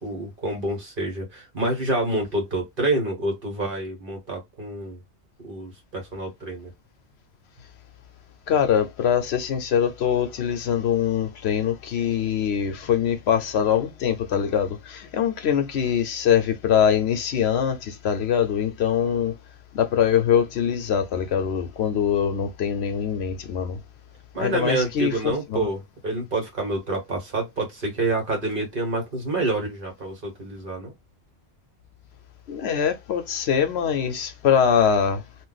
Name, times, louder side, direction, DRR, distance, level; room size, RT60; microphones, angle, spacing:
voice 1, 0.0-5.0 5.4-6.7 24.3-30.9, right 2 dB, 50° right, 1.4 m, -27 dB
voice 2, 8.5-19.3 19.7-23.8 24.4-25.7 32.5-35.2, left 8 dB, 70° left, 0.9 m, -23 dB
2.6 x 2.2 x 3.9 m
omnidirectional pair, 1.1 m